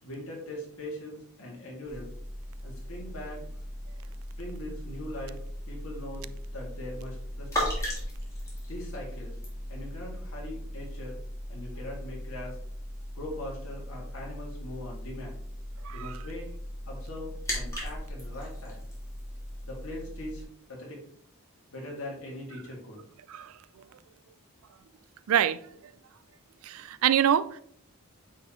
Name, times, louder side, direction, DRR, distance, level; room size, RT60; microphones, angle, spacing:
voice 1, 0.0-2.1 2.6-3.5 4.4-7.8 8.7-9.4 9.7-11.2 11.5-12.6 13.1-15.4 15.9-16.5 16.9-18.8 19.6-21.0 21.7-23.1, left 1 dB, 70° left, -2 dB, 2.3 m, -41 dB
sound 1, 1.8-20.4, equal, 15° left, 2.0 m, -38 dB
voice 2, 15.8-16.2 23.3-23.6 25.3-25.6 26.6-27.6, right 9 dB, 70° right, 15 dB, 0.3 m, -25 dB
9.0 x 4.0 x 3.1 m, 0.64 s
head